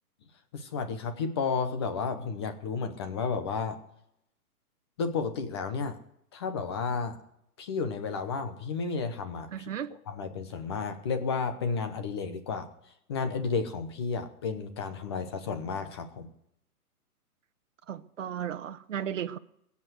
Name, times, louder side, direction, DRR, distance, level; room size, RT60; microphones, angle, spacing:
voice 1, 0.5-3.8 5.0-6.0 6.3-7.2 7.6-9.7 10.1-12.7 13.1-16.3, left 5 dB, 15° left, 0.9 m, -32 dB
voice 2, 9.5-9.9 17.9-19.4, right 9 dB, 55° right, 1.1 m, -35 dB
21.0 x 8.3 x 8.0 m
hypercardioid pair, 170°, 46 cm